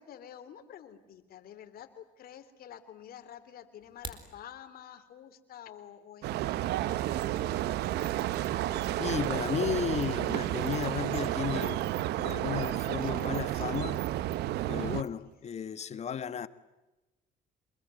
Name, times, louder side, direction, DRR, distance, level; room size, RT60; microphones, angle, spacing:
voice 1, 0.0-7.5 14.7-15.2 15.8-15.9, left 10 dB, 65° left, 3.4 m, -50 dB
sound 1, 3.8-4.3, right 3 dB, 30° right, 4.3 m, -43 dB
sound 2, 6.2-15.0, right 14 dB, 80° right, 1.0 m, -31 dB
sound 3, 6.8-15.4, right 8 dB, 60° right, 2.7 m, -45 dB
voice 2, 9.0-11.9 12.1-14.1 14.7-16.5, left 7 dB, 40° left, 1.5 m, -34 dB
28.0 x 22.0 x 9.5 m
cardioid pair, 110°, 17 cm